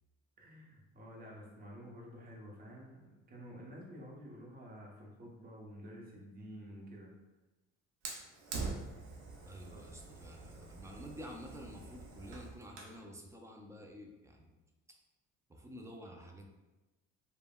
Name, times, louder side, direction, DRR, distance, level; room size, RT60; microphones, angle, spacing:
voice 1, 0.4-7.2 9.7-9.8, equal, 30° right, -2 dB, 0.8 m, -50 dB
Fire, 8.0-13.0, right 3 dB, 65° right, 0.7 m, -45 dB
voice 2, 9.5-14.5 15.5-16.5, equal, 10° right, 1 dB, 0.3 m, -50 dB
3.3 x 2.1 x 2.2 m, 1.1 s
supercardioid pair, 100°, 31 cm